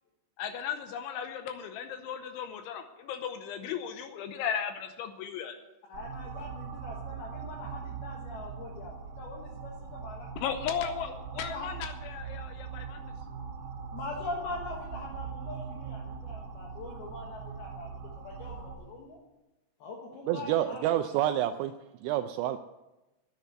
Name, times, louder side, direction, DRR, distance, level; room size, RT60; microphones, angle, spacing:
voice 1, 0.4-5.6 10.4-13.0, left 8 dB, 85° left, 8 dB, 3.0 m, -36 dB
voice 2, 5.9-10.3 11.3-11.7 13.9-17.9 18.2-18.6 18.9-19.2 19.8-20.8, left 3 dB, 65° left, -1 dB, 2.8 m, -42 dB
sound 1, 5.9-18.8, right 6 dB, 60° right, 3.0 m, -41 dB
voice 3, 20.2-21.7 22.0-22.6, right 12 dB, 90° right, 8 dB, 2.6 m, -28 dB
10.5 x 8.0 x 9.6 m, 1.0 s
omnidirectional pair, 5.8 m